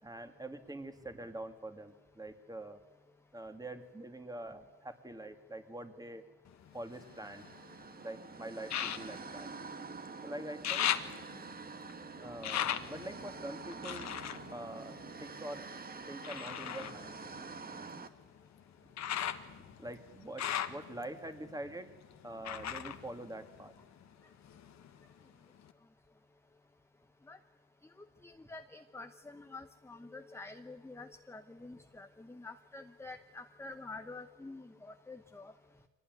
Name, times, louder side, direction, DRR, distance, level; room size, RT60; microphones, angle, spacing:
voice 1, 0.0-2.8 3.3-6.2 6.7-7.5 8.0-9.5 10.2-10.9 12.2-14.1 14.5-15.6 16.1-17.1 19.5-21.9 22.2-23.7 31.7-31.8, right 1 dB, 10° right, 7 dB, 2.3 m, -45 dB
sound 1, 6.5-7.8 8.6-10.2 10.4-15.6 16.2-24.1 24.4-25.2 25.7-25.8, left 10 dB, 65° left, 1.4 m, -39 dB
sound 2, 6.8-18.1, right 4 dB, 30° right, 1.4 m, -47 dB
voice 2, 28.2-35.5, left 3 dB, 10° left, 7 dB, 0.9 m, -48 dB
24.0 x 18.5 x 9.5 m, 1.3 s
cardioid pair, 90°, 30 cm